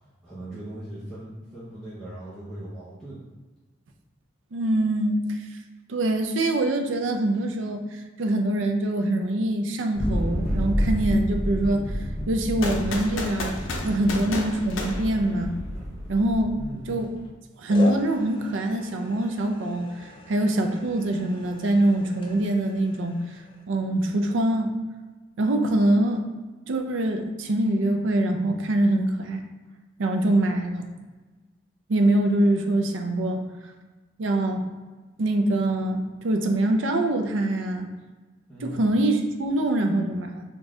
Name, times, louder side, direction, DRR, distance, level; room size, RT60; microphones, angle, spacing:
voice 1, 0.2-3.2 16.5-17.0 38.5-38.9, right 1 dB, 5° left, -12 dB, 0.7 m, -39 dB
voice 2, 4.5-5.3 5.9-7.8 8.2-11.8 12.3-13.5 13.8-15.6 16.1-16.6 16.9-17.1 17.6-23.2 23.7-24.7 25.4-26.2 26.7-29.4 30.0-30.8 31.9-33.4 34.2-34.6 35.2-37.9 38.6-40.4, right 1 dB, 70° right, 5 dB, 0.5 m, -24 dB
sound 1, 9.9-16.7, equal, 55° right, 1.1 m, -30 dB
sound 2, 12.6-15.8, left 2 dB, 80° left, 0.6 m, -33 dB
sound 3, 16.7-17.3 17.7-23.6, left 2 dB, 25° left, 0.4 m, -40 dB
4.0 x 2.3 x 3.7 m, 1.3 s
head